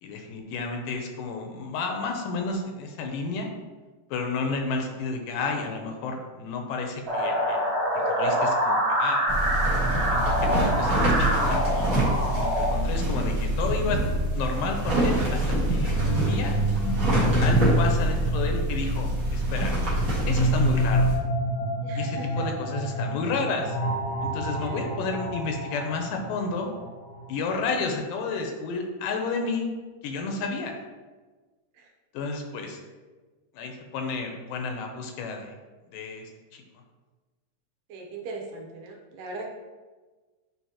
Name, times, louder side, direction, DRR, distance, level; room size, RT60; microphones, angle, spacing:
voice 1, 0.0-3.5 4.1-7.7 8.1-9.2 10.1-11.9 12.3-14.0 14.4-16.6 17.4-19.7 20.3-21.1 22.0-23.8 24.2-26.7 27.3-29.7 30.0-30.8 32.1-32.8 33.5-35.5 35.9-36.6, left 4 dB, 80° left, 3 dB, 2.2 m, -31 dB
sound 1, 7.1-12.7, equal, 35° right, 1.7 m, -25 dB
sound 2, 9.3-21.2, right 1 dB, 50° right, 1.0 m, -26 dB
sound 3, 15.6-27.5, right 1 dB, 65° left, 1.5 m, -28 dB
voice 2, 21.8-22.4 24.6-25.0 37.9-39.5, right 3 dB, 75° right, 1 dB, 2.3 m, -39 dB
9.3 x 3.7 x 2.8 m, 1.3 s
omnidirectional pair, 4.0 m